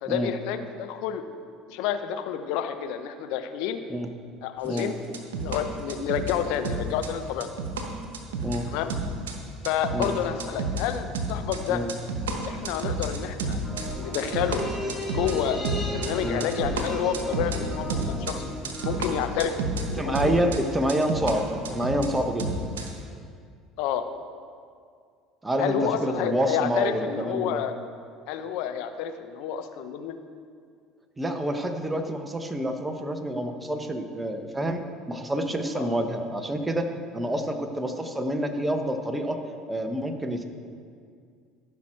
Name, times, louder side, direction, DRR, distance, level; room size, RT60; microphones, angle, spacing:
voice 1, 0.0-1.2 1.7-3.8 4.4-4.9 5.4-7.5 8.7-8.9 9.6-11.8 12.4-13.6 14.0-14.6 15.1-15.6 15.9-18.5 18.8-20.3 23.8-24.1 25.6-27.8 28.3-30.2 35.8-35.9, left 9 dB, 70° left, 9 dB, 0.7 m, -29 dB
sound 1, 4.7-5.6 5.9-6.4 6.6-7.9 8.1-8.6 8.9-9.4 9.6-20.6 20.9-21.3 21.6-22.9, right 3 dB, 90° right, 1.1 m, -30 dB
sound 2, 13.6-20.2 20.5-20.6, left 1 dB, 5° left, 2.6 m, -36 dB
voice 2, 20.0-22.7 25.4-27.6 31.2-36.9 37.1-39.4 39.7-40.4, right 1 dB, 15° right, 5 dB, 1.1 m, -28 dB
14.5 x 6.1 x 4.5 m, 2.2 s
hypercardioid pair, 75°, 0 cm